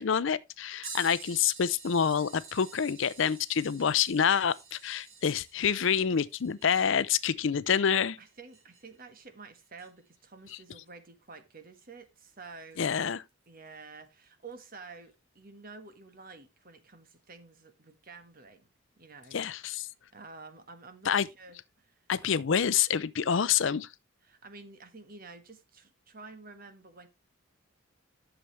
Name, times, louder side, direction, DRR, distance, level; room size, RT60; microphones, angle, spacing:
voice 1, 0.0-8.2 12.8-13.2 19.3-19.9 21.1-21.3 22.1-23.9, left 7 dB, 65° left, 0.5 m, -27 dB
sound 1, 0.8-9.0 9.8-9.9 12.2-12.3 13.3-13.5 14.5-14.6, right 5 dB, 85° right, 3.5 m, -49 dB
voice 2, 8.2-12.9 13.5-18.7 19.0-19.6 20.1-22.4 24.2-27.1, right 4 dB, 45° right, 1.5 m, -50 dB
11.5 x 6.9 x 3.2 m
head